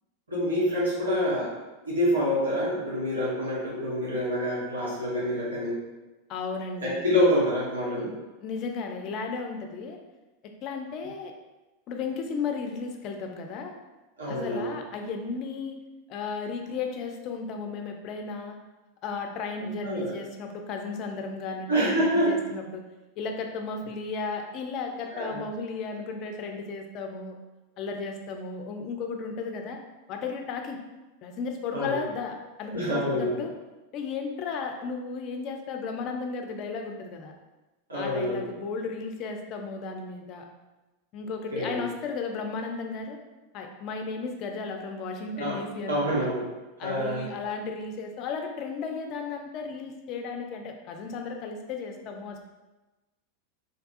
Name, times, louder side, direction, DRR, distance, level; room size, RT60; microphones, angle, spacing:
voice 1, 0.3-1.5 1.8-5.8 6.8-8.1 14.2-14.7 19.6-20.1 21.7-22.3 25.1-25.4 31.7-32.0 32.7-33.4 37.9-38.5 41.5-41.8 45.3-45.6 45.9-46.5 46.8-47.3, equal, 90° right, -7 dB, 0.8 m, -27 dB
voice 2, 6.3-7.0 8.4-10.0 10.4-11.3 11.9-13.7 14.3-15.8 16.1-18.6 19.0-22.8 23.2-27.4 27.8-29.8 30.1-30.8 31.2-33.5 33.9-37.3 37.9-40.5 41.1-43.2 43.5-46.3 46.8-52.4, left 4 dB, 45° left, 4 dB, 0.4 m, -34 dB
2.7 x 2.2 x 2.5 m, 1.1 s
hypercardioid pair, 95°, 0 cm